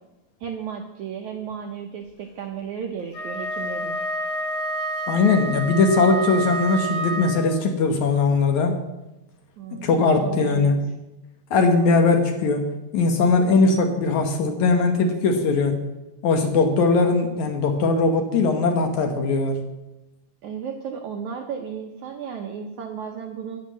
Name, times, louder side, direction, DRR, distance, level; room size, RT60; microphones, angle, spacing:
voice 1, 0.4-4.0 9.6-10.7 20.4-23.6, right 7 dB, 80° right, 3 dB, 1.7 m, -34 dB
Wind instrument woodwind instrument, 3.1-7.7, right 2 dB, 80° left, 4.0 m, -29 dB
voice 2, 5.1-8.7 9.7-10.8 11.5-15.8 16.2-19.6, left 3 dB, 65° left, 4 dB, 2.0 m, -20 dB
11.0 x 9.3 x 7.5 m, 0.98 s
omnidirectional pair, 4.6 m